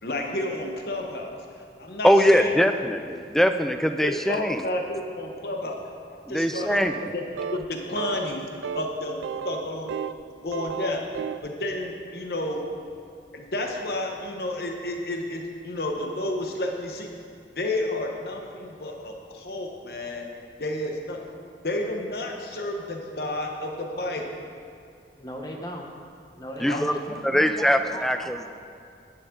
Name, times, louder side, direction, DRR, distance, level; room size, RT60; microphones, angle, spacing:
voice 1, 0.0-1.4 1.8-2.5 4.0-5.8 6.1-6.7 7.1-7.2 7.5-8.5 8.7-9.9 10.4-11.0 11.4-12.6 13.3-17.1 17.6-20.3 20.6-21.2 21.6-24.3 26.7-26.9, left 1 dB, 60° left, 2 dB, 1.0 m, -31 dB
voice 2, 2.0-4.6 6.3-7.1 26.6-26.9 27.2-28.5, equal, ahead, 8 dB, 0.3 m, -22 dB
sound 1, 6.7-7.1 7.4-7.7 8.0-8.3 8.6-8.9 9.2-10.2 10.5-11.5, right 7 dB, 85° right, 0.3 m, -33 dB
voice 3, 25.2-25.9 26.3-28.4, equal, 20° left, 2 dB, 0.9 m, -38 dB
10.5 x 9.8 x 3.8 m, 2.3 s
head